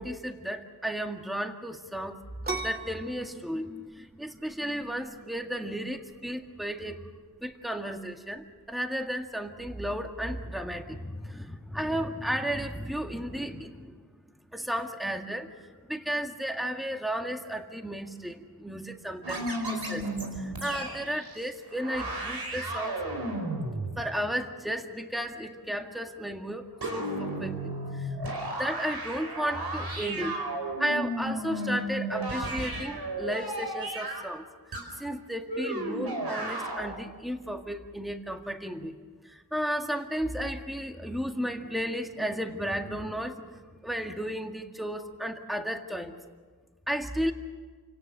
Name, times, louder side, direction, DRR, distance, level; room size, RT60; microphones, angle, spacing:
voice 1, 0.0-2.2 2.5-7.1 7.4-14.0 14.5-23.0 23.5-23.7 24.0-30.4 30.8-34.5 35.0-38.9 39.2-46.2 46.9-47.3, equal, ahead, 4 dB, 1.9 m, -34 dB
sound 1, 2.4-9.8, right 3 dB, 25° right, 2.2 m, -42 dB
sound 2, 19.2-21.4 21.7-24.1 26.8-34.3 34.7-34.9 35.5-36.9, right 1 dB, 90° right, 4.7 m, -34 dB
29.0 x 18.0 x 6.7 m, 1.5 s
wide cardioid pair, 65°, 38 cm